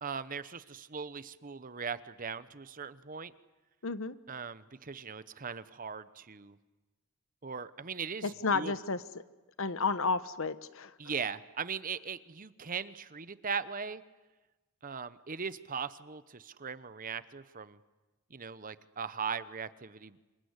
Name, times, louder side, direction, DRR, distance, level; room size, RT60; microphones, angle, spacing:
voice 1, 0.0-3.3 4.3-6.6 7.4-8.7 11.0-14.0 14.8-17.8 18.3-20.2, right 6 dB, 40° right, 14 dB, 0.9 m, -39 dB
voice 2, 3.8-4.2 8.2-9.2 9.6-10.9, left 4 dB, 60° left, 14 dB, 1.0 m, -32 dB
27.0 x 22.5 x 9.7 m, 1.2 s
head